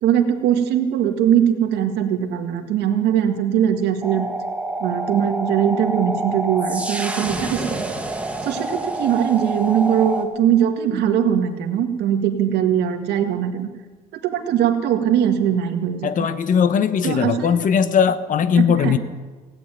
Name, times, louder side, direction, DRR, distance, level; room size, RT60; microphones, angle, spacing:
voice 1, 0.0-4.3 4.8-7.8 8.4-13.7 14.2-16.1 17.0-17.5 18.6-19.0, right 9 dB, 80° right, 5 dB, 1.8 m, -20 dB
sound 1, 4.0-10.3, right 2 dB, 10° right, 1.8 m, -27 dB
voice 2, 16.0-19.0, left 7 dB, 50° left, 13 dB, 1.1 m, -19 dB
17.0 x 9.2 x 9.2 m, 1.3 s
cardioid pair, 110°, 17 cm